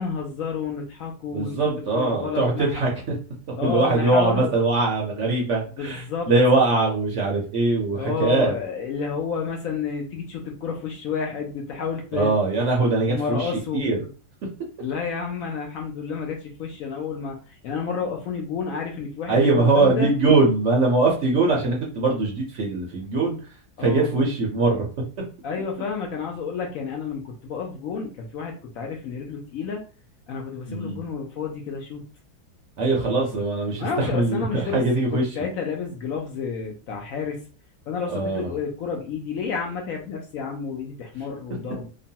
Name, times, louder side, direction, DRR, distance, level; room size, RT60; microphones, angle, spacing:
voice 1, 0.0-1.6 1.9-2.7 3.6-4.5 5.8-6.3 8.0-12.3 12.8-13.8 14.8-20.1 23.8-24.1 25.4-29.8 30.3-32.0 33.8-34.8 35.1-37.4 37.9-41.9, left 6 dB, 70° left, 1 dB, 0.8 m, -30 dB
voice 2, 1.3-3.1 3.6-8.5 12.1-14.0 19.3-23.4 23.8-24.9 30.7-31.0 32.8-35.4 38.1-38.6, right 3 dB, 60° right, -1 dB, 0.8 m, -22 dB
3.0 x 2.2 x 2.7 m, 0.38 s
omnidirectional pair, 1.7 m